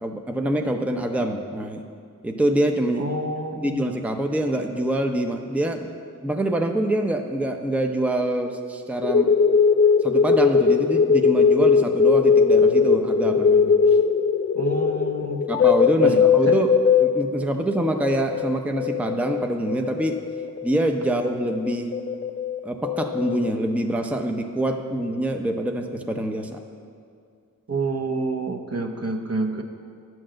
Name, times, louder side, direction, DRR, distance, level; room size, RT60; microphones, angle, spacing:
voice 1, 0.0-1.9 2.2-3.0 3.5-5.9 6.2-9.3 10.0-13.7 15.5-16.7 17.0-20.2 20.6-21.9 22.6-26.6, right 1 dB, 5° right, 4 dB, 0.7 m, -25 dB
voice 2, 3.0-3.8 14.5-15.4 16.0-16.2 16.5-16.6 27.7-29.6, right 2 dB, 45° right, 4 dB, 0.9 m, -28 dB
sound 1, 9.0-17.2 17.7-20.7 21.1-23.5, left 5 dB, 40° left, 0.4 m, -19 dB
10.0 x 4.7 x 7.5 m, 2.3 s
cardioid pair, 40°, 33 cm